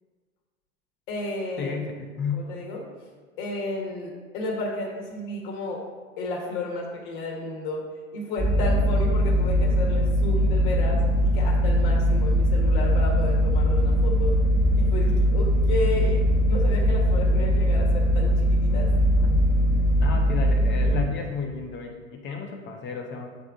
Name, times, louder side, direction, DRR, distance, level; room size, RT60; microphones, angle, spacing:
voice 1, 1.1-1.7 2.3-2.8 3.4-5.8 6.2-7.8 8.1-14.4 14.8-18.9, left 2 dB, 50° left, 0 dB, 1.4 m, -32 dB
voice 2, 1.6-2.5 19.2-19.4 20.0-23.3, left 5 dB, 30° left, 2 dB, 0.8 m, -32 dB
sound 1, 8.4-21.0, equal, ahead, 1.4 m, -21 dB
8.2 x 3.6 x 3.6 m, 1.5 s
hypercardioid pair, 95°, 40 cm